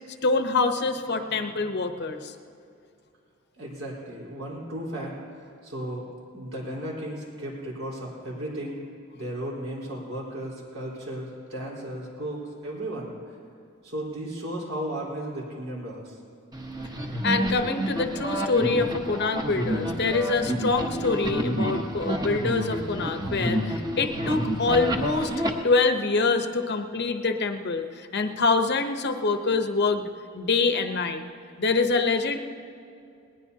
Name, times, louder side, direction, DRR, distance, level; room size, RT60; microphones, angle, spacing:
voice 1, 0.2-2.3 17.2-25.3 25.6-30.1 30.3-31.2 31.6-32.4, left 3 dB, 55° left, 7 dB, 0.9 m, -25 dB
voice 2, 3.6-6.1 6.3-8.8 9.1-13.4 13.8-16.2, right 1 dB, 75° right, -4 dB, 4.2 m, -35 dB
sound 1, 16.5-25.5, equal, 20° right, 1.1 m, -29 dB
19.5 x 19.5 x 2.8 m, 2.5 s
head